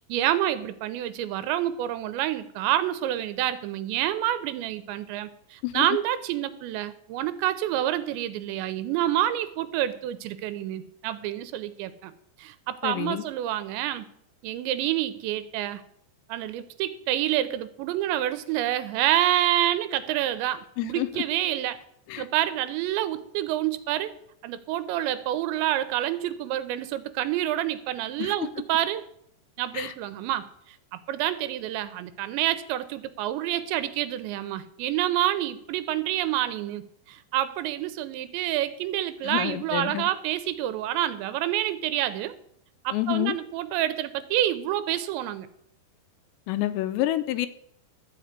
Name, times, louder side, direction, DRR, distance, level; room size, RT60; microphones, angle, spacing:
voice 1, 0.1-12.1 12.4-14.1 14.4-15.8 16.3-21.8 22.2-24.1 24.4-29.1 29.6-30.5 30.9-42.3 42.8-45.5, right 13 dB, 90° right, 13 dB, 2.9 m, -28 dB
voice 2, 12.8-13.2 20.8-21.2 22.1-22.3 28.2-28.3 29.7-29.9 39.2-40.1 42.9-43.4 46.5-47.5, left 15 dB, 85° left, 12 dB, 2.7 m, -28 dB
13.0 x 5.1 x 8.1 m, 0.70 s
omnidirectional pair, 5.2 m